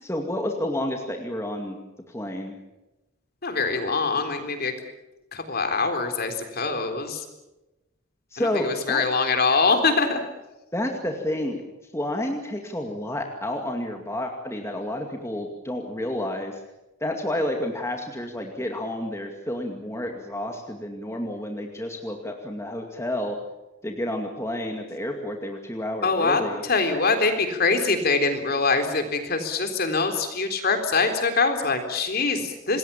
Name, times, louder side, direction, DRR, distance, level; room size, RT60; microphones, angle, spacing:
voice 1, 0.0-1.8 2.1-2.6 8.3-9.0 10.7-11.6 11.9-16.6 17.0-23.4 23.8-26.6, left 1 dB, 15° left, 2 dB, 2.3 m, -30 dB
voice 2, 3.4-4.7 5.3-7.2 8.4-10.2 26.0-32.8, left 4 dB, 45° left, 7 dB, 3.8 m, -24 dB
27.0 x 21.0 x 7.3 m, 1.0 s
head